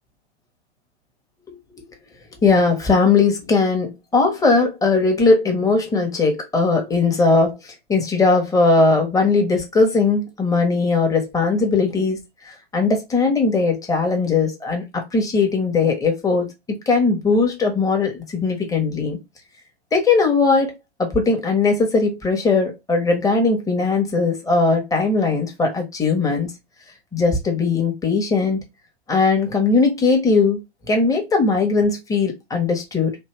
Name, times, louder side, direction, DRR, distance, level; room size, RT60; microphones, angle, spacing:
voice 1, 2.4-16.5 16.9-19.2 19.9-26.5 27.1-28.6 29.1-30.6 30.9-33.2, left 4 dB, 10° left, 1.0 m, -19 dB
3.2 x 2.6 x 3.1 m
hypercardioid pair, 105°, 33 cm